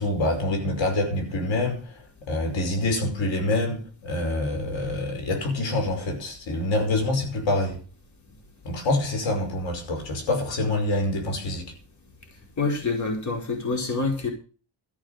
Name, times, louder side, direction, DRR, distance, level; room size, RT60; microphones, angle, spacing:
voice 1, 0.0-7.8 8.6-11.7, left 2 dB, 80° left, 5.1 m, -26 dB
voice 2, 12.6-14.3, left 3 dB, 40° left, 4.9 m, -26 dB
14.0 x 8.1 x 6.5 m
wide cardioid pair, 150°, 44 cm